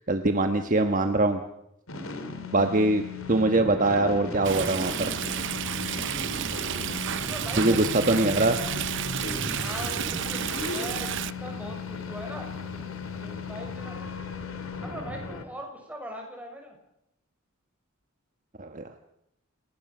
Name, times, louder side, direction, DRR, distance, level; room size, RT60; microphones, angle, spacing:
voice 1, 0.0-1.4 2.5-3.0 3.3-5.1 7.6-8.5 18.6-18.8, right 2 dB, 40° right, 6 dB, 1.3 m, -23 dB
sound 1, 1.9-15.5, left 3 dB, 75° left, 3.1 m, -36 dB
Stream, 4.4-11.3, right 9 dB, 60° right, 0.7 m, -32 dB
voice 2, 7.2-8.2 9.5-12.5 13.1-14.0 14.8-16.8, equal, 5° right, 1 dB, 6.6 m, -41 dB
28.0 x 19.0 x 6.2 m, 0.82 s
head